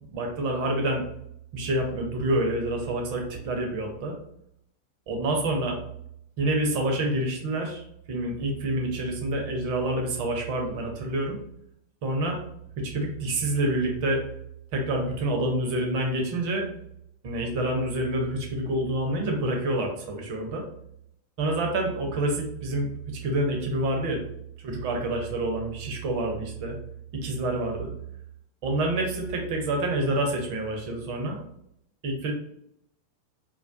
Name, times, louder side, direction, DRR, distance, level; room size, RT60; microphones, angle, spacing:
voice 1, 0.0-1.0 1.5-4.2 5.1-5.8 6.4-11.4 12.0-12.4 12.8-14.2 14.7-16.7 17.2-20.6 21.4-24.2 24.6-26.8 27.2-27.9 28.6-31.4 32.0-32.3, right 1 dB, 45° right, 2 dB, 0.6 m, -27 dB
2.3 x 2.2 x 2.5 m, 0.74 s
figure-of-eight pair, 90°, 0 cm